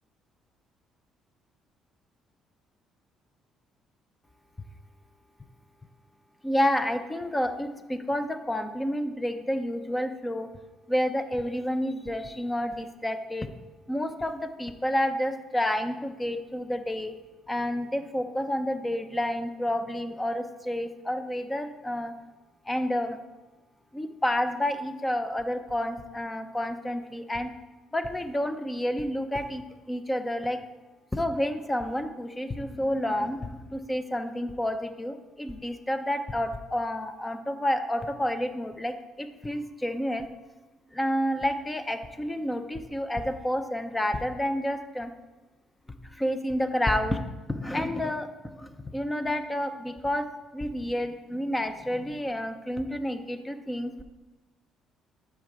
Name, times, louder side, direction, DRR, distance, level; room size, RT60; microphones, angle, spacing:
voice 1, 6.4-10.5 10.9-13.5 13.9-17.1 17.5-22.1 22.7-23.2 23.9-27.5 27.9-30.6 31.1-40.3 40.9-45.1 46.1-47.2 47.5-48.3 48.5-50.3 50.5-54.0, left 1 dB, 15° left, 8 dB, 0.7 m, -29 dB
12.0 x 4.8 x 3.4 m, 1.1 s
supercardioid pair, 70°, 0 cm